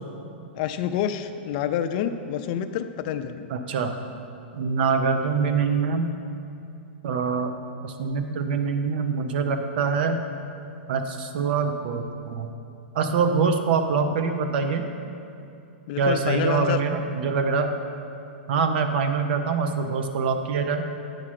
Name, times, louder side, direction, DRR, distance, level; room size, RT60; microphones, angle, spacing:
voice 1, 0.5-3.5 15.9-16.8, left 9 dB, 45° left, 9 dB, 0.5 m, -27 dB
voice 2, 3.5-4.0 4.5-6.1 7.0-7.5 7.8-10.2 10.9-12.5 12.9-14.8 16.0-17.7 18.5-20.9, right 5 dB, 60° right, 7 dB, 0.8 m, -24 dB
8.9 x 4.9 x 5.8 m, 2.7 s
hypercardioid pair, 145°, 6 cm